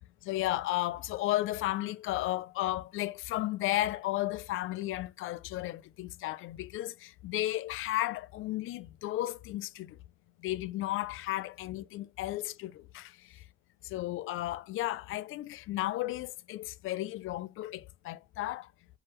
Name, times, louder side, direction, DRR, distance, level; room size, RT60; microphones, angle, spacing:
voice 1, 0.2-10.0 10.4-13.4 13.8-18.7, left 16 dB, 75° left, 0.4 m, -34 dB
4.6 x 3.0 x 3.0 m
supercardioid pair, 65°, 21 cm